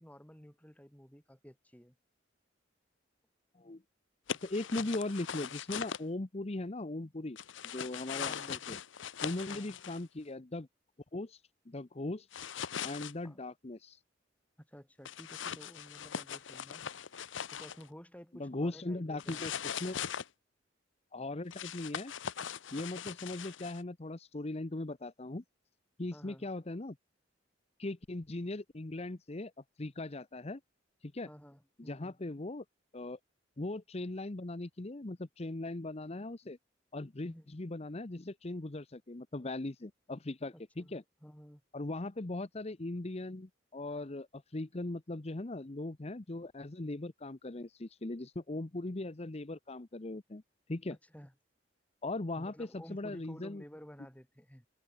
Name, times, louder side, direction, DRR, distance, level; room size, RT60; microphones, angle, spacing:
voice 1, 0.0-1.9 8.1-8.6 9.5-9.8 13.2-13.4 14.6-16.8 17.5-19.5 26.1-26.5 31.2-32.2 37.2-37.5 40.5-40.9 41.2-41.6 50.9-51.3 52.4-54.7, equal, 10° left, 4.5 m, -53 dB
sound 1, 4.3-6.0 7.4-10.0 12.3-13.1 15.0-17.9 19.2-20.3 21.5-23.8, left 8 dB, 85° left, 0.8 m, -40 dB
voice 2, 4.4-7.4 7.6-8.8 9.2-10.7 11.1-12.3 12.8-14.0 18.4-20.0 21.1-22.1 22.7-25.4 26.0-27.0 27.8-29.5 29.8-30.6 31.0-31.3 31.8-32.6 32.9-33.2 33.6-36.6 36.9-41.0 41.7-50.4 50.7-51.0 52.0-53.6, left 2 dB, 35° left, 0.9 m, -39 dB
head